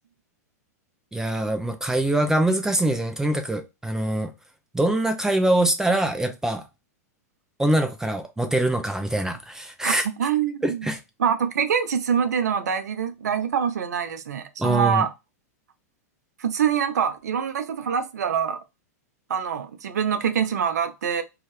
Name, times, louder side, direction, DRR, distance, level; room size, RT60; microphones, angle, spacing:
voice 1, 1.1-4.3 4.7-6.6 7.6-10.1 10.6-11.0 14.6-15.1, right 1 dB, 5° right, 0.4 m, -23 dB
voice 2, 9.8-10.9 11.2-15.1 16.4-18.6 19.3-21.2, right 8 dB, 80° right, 0.6 m, -25 dB
2.7 x 2.4 x 3.1 m
hypercardioid pair, 115°, 9 cm